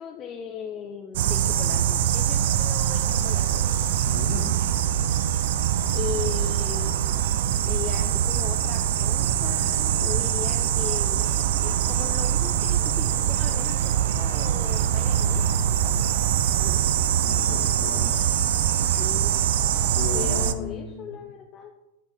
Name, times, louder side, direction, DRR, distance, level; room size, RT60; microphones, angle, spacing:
voice 1, 0.0-3.6 5.9-7.0 7.6-16.0 16.6-16.8 18.8-19.3 20.1-21.7, left 8 dB, 30° left, 4 dB, 0.6 m, -38 dB
sound 1, 1.1-20.5, right 10 dB, 55° right, 0.4 m, -23 dB
voice 2, 4.1-4.6 17.2-18.1 19.8-21.1, left 6 dB, 50° left, 3 dB, 1.4 m, -35 dB
11.5 x 4.4 x 3.4 m, 0.96 s
figure-of-eight pair, 90°, 0 cm